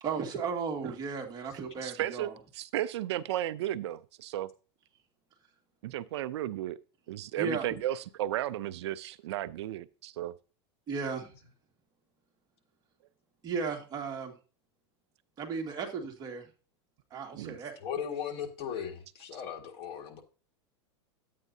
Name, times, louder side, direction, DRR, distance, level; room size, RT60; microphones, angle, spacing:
voice 1, 0.0-2.3 7.4-7.7 10.9-11.3 13.4-14.3 15.4-16.5 17.1-17.7, right 5 dB, 30° right, 2 dB, 1.9 m, -35 dB
voice 2, 1.8-4.5 5.8-6.8 7.1-10.3 17.4-17.6, right 13 dB, 75° right, 16 dB, 0.5 m, -34 dB
voice 3, 17.8-20.2, left 8 dB, 45° left, 3 dB, 1.8 m, -37 dB
10.5 x 8.4 x 2.7 m, 0.35 s
supercardioid pair, 130°, 14 cm